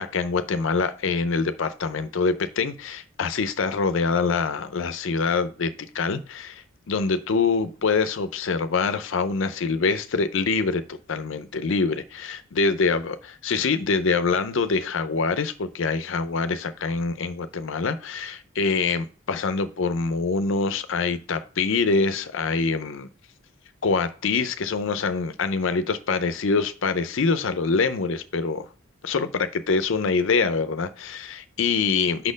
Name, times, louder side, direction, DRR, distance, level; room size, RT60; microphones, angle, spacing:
voice 1, 0.0-13.2 13.4-23.1 23.8-28.7 29.0-32.3, left 4 dB, 60° left, 11 dB, 0.5 m, -25 dB
5.7 x 4.2 x 5.0 m, 0.40 s
head